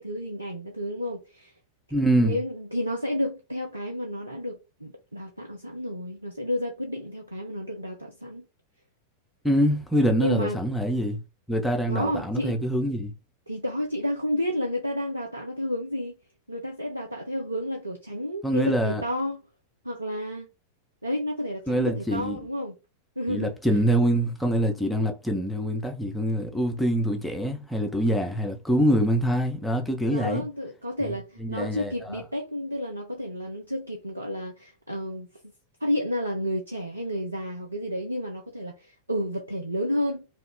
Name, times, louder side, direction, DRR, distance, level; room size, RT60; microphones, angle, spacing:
voice 1, 0.0-1.5 2.1-8.4 10.0-10.6 11.9-12.6 13.5-16.1 16.5-19.4 19.8-20.5 21.0-22.8 23.2-23.8 30.1-35.3 35.8-40.4, equal, 85° right, 0.5 m, -31 dB
voice 2, 1.9-2.4 9.4-11.2 11.5-13.1 18.4-19.0 21.7-22.4 23.3-30.4 31.0-31.1 31.4-32.2, equal, 5° left, 0.8 m, -25 dB
3.1 x 2.3 x 3.7 m
figure-of-eight pair, 90°, 0 cm